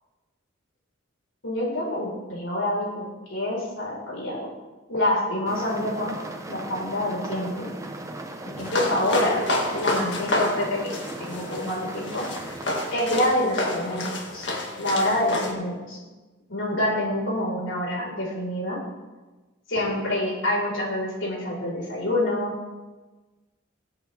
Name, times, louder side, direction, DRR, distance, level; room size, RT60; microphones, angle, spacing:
voice 1, 1.4-3.0 3.3-4.5 4.9-6.2 6.5-7.7 8.4-9.4 9.7-12.5 12.9-14.1 14.3-14.5 14.8-16.0 16.5-18.8 19.7-22.5, left 1 dB, 85° left, -4 dB, 4.8 m, -27 dB
sound 1, 5.5-13.0, right 2 dB, 15° right, 1.0 m, -38 dB
sound 2, 8.6-15.5, left 2 dB, 60° left, 2.2 m, -29 dB
23.0 x 8.5 x 3.5 m, 1.2 s
head